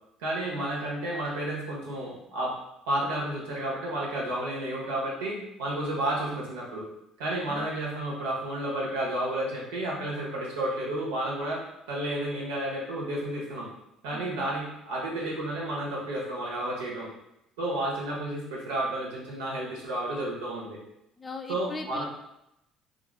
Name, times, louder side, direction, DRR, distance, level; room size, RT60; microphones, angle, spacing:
voice 1, 0.2-2.6 2.9-6.8 7.2-13.7 14.0-17.1 17.6-20.8 21.5-22.0, right 1 dB, 90° right, -4 dB, 0.9 m, -31 dB
voice 2, 21.2-22.0, left 3 dB, 25° left, 5 dB, 0.4 m, -39 dB
3.0 x 2.5 x 2.3 m, 0.82 s
supercardioid pair, 70°, 0 cm